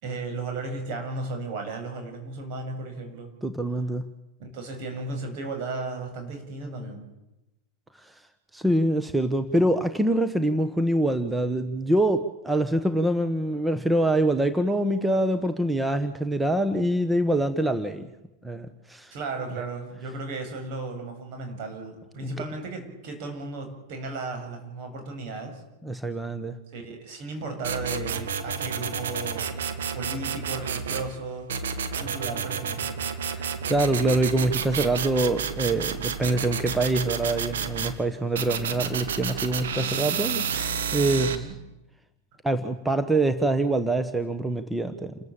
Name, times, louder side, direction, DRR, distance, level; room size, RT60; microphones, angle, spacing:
voice 1, 0.0-3.3 4.4-7.1 19.1-25.6 26.7-29.5 29.9-31.5 32.0-33.0 41.1-41.5, right 3 dB, 55° right, 4 dB, 7.8 m, -35 dB
voice 2, 3.4-4.1 8.0-8.3 8.5-18.1 18.4-19.1 22.2-22.3 25.8-26.6 33.3-41.6 42.4-45.2, right 1 dB, 5° right, 10 dB, 1.3 m, -25 dB
sound 1, 27.6-31.1 31.5-37.9 38.4-41.4, right 6 dB, 85° right, 2.1 m, -30 dB
29.0 x 14.0 x 9.0 m, 0.96 s
hypercardioid pair, 115°, 0 cm